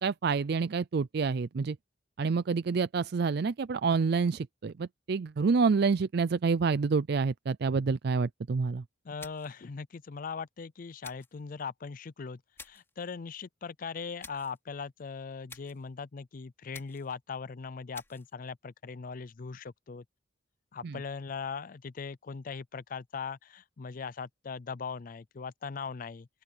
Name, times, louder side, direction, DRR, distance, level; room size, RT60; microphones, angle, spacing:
voice 1, 0.0-1.8 2.2-8.8 20.8-21.0, right 5 dB, 55° right, 0.4 m, -28 dB
voice 2, 9.0-20.0 20.7-26.3, left 5 dB, 45° left, 0.4 m, -40 dB
sound 1, 9.2-9.6 11.0-11.4 12.6-12.9 14.2-14.6 15.5-15.9 16.7-17.2 17.9-18.3, left 3 dB, 15° left, 3.1 m, -50 dB
open air
head